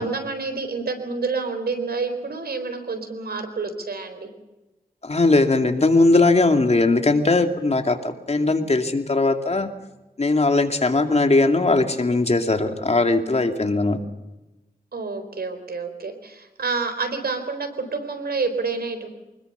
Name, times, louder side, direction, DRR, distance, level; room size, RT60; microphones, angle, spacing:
voice 1, 0.0-4.3 8.4-8.6 14.9-19.1, right 4 dB, 85° right, 7 dB, 4.2 m, -28 dB
voice 2, 5.0-9.7 10.2-14.0, left 2 dB, 45° left, 6 dB, 2.5 m, -19 dB
25.0 x 21.0 x 6.8 m, 1.0 s
wide cardioid pair, 65°, 16 cm